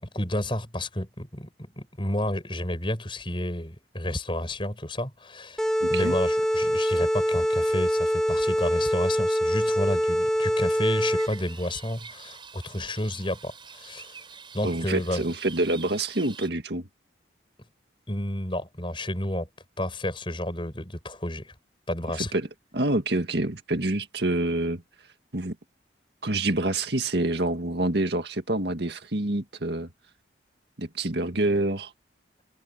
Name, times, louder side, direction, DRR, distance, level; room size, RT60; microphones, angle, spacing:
voice 1, 0.0-5.6 5.9-14.1 14.5-15.2 18.1-19.5 19.8-21.5 21.9-22.3, left 1 dB, 25° left, 7.3 m, -31 dB
sound 1, 5.6-11.5, equal, 5° left, 1.8 m, -24 dB
voice 2, 5.8-6.2 14.6-16.9 22.1-22.5 22.7-24.8 25.3-25.6 26.2-29.9 30.8-31.9, right 2 dB, 65° right, 1.9 m, -27 dB
sound 2, 11.2-16.5, right 6 dB, 25° right, 6.3 m, -45 dB
head